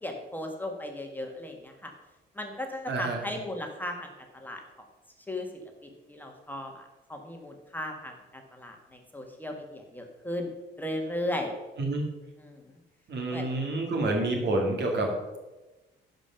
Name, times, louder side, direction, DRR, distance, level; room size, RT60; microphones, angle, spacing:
voice 1, 0.0-1.9 2.3-4.6 5.3-10.5 10.8-11.5 12.4-12.6 13.3-13.5, left 1 dB, 10° left, 2 dB, 1.5 m, -36 dB
voice 2, 2.9-3.2 11.8-12.0 13.1-15.4, right 2 dB, 60° right, 2 dB, 2.3 m, -28 dB
11.0 x 5.2 x 5.7 m, 1.1 s
cardioid pair, 90°, 20 cm